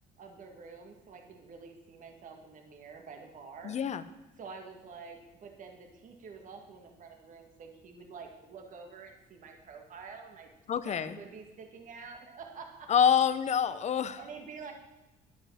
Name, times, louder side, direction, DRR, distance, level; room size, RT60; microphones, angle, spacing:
voice 1, 0.2-3.8 4.4-10.5 10.8-12.9 14.2-14.7, right 5 dB, 50° right, 3 dB, 1.9 m, -48 dB
voice 2, 3.6-4.0 10.7-11.2 12.9-14.2, left 8 dB, 40° left, 14 dB, 0.8 m, -26 dB
10.5 x 9.5 x 6.4 m, 1.0 s
cardioid pair, 110°, 17 cm